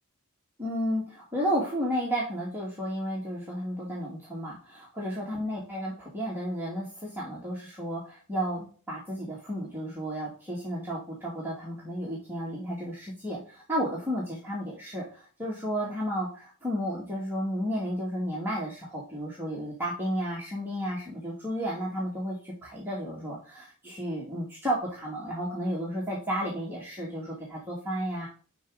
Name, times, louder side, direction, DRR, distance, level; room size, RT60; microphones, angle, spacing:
voice 1, 0.6-28.3, equal, 10° right, -6 dB, 2.3 m, -32 dB
11.5 x 4.8 x 3.9 m, 0.39 s
head